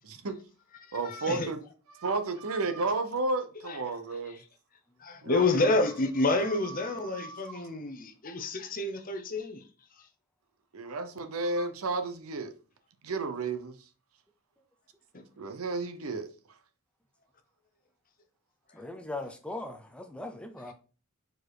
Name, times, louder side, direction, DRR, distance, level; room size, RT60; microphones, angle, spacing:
voice 1, 0.0-0.4 0.9-1.6 2.0-4.4 5.2-5.7 6.6-7.6 10.7-12.5 13.0-13.8 15.4-16.3, right 3 dB, 75° right, 0.9 m, -33 dB
voice 2, 0.7-1.5 3.6-3.8 4.3-4.4 5.0-9.6 10.0-10.1 15.1-15.2 20.7-20.8, left 2 dB, 40° left, 0.8 m, -29 dB
voice 3, 18.7-20.7, left 2 dB, 5° left, 0.6 m, -39 dB
4.7 x 4.4 x 4.8 m
head